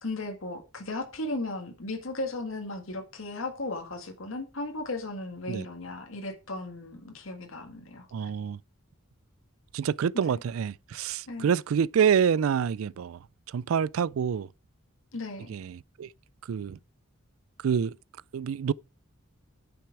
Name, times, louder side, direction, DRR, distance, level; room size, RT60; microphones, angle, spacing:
voice 1, 0.0-8.3 11.3-11.5 15.1-15.5, left 2 dB, 70° left, 1.8 m, -36 dB
voice 2, 8.1-8.6 9.7-13.2 13.5-14.5 15.5-16.1 16.5-16.8 17.6-17.9 18.3-18.7, right 7 dB, 75° right, 0.4 m, -27 dB
10.0 x 6.1 x 4.7 m
head